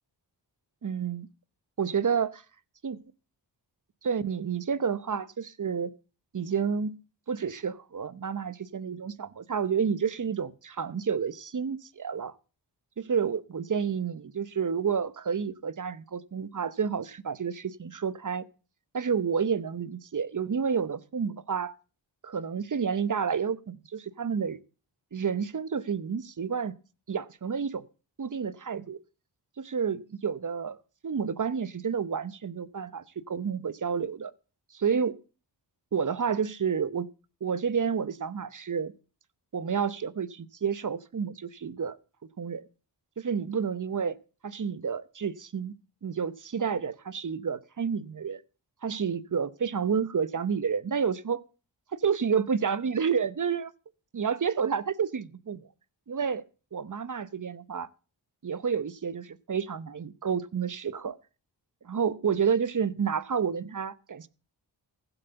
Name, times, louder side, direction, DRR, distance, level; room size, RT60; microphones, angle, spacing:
voice 1, 0.8-1.3 1.8-2.4 2.8-3.0 4.0-5.9 6.3-7.0 7.3-12.3 13.0-18.4 18.9-21.7 22.2-24.6 25.1-26.7 27.1-27.8 28.2-29.0 29.6-30.8 31.0-34.3 34.7-35.2 35.9-37.1 37.4-38.9 39.5-42.0 42.4-42.7 43.2-44.2 44.4-45.7 46.0-48.4 48.8-51.4 51.9-53.7 54.1-55.7 56.1-56.4 56.7-57.9 58.4-61.2 61.8-64.3, right 6 dB, 45° right, 0.9 m, -30 dB
15.5 x 8.0 x 6.8 m
wide cardioid pair, 80°, 44 cm